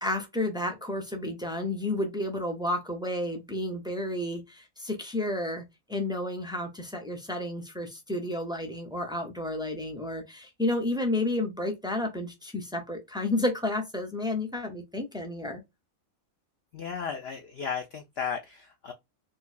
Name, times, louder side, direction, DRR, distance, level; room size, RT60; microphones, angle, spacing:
voice 1, 0.0-5.6 5.9-15.6, left 1 dB, 5° right, 0.3 m, -31 dB
voice 2, 16.7-18.9, left 6 dB, 65° left, 0.6 m, -35 dB
4.5 x 2.3 x 2.5 m
omnidirectional pair, 1.5 m